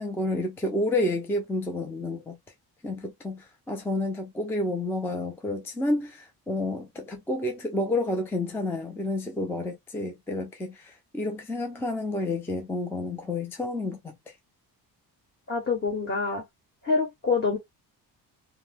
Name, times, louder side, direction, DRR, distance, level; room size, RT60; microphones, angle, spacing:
voice 1, 0.0-2.4 2.8-14.0, left 2 dB, 5° left, 0.4 m, -30 dB
voice 2, 15.5-16.4 16.8-17.6, left 4 dB, 30° left, 1.2 m, -26 dB
2.7 x 2.2 x 3.3 m
cardioid pair, 175°, 41 cm